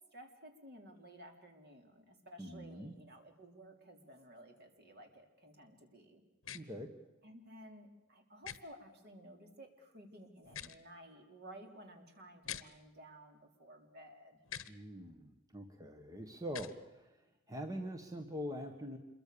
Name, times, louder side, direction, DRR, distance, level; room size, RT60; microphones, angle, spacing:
voice 1, 0.1-6.2 7.2-14.4, right 1 dB, 50° right, 4 dB, 4.1 m, -55 dB
voice 2, 2.4-2.9 6.5-6.9 14.7-19.0, equal, 15° right, 5 dB, 1.6 m, -44 dB
sound 1, 6.4-6.6 8.4-8.6 10.4-10.8 12.4-12.6 14.4-14.7 16.5-16.7, left 9 dB, 70° left, 1.2 m, -44 dB
27.5 x 23.0 x 7.0 m, 1.1 s
head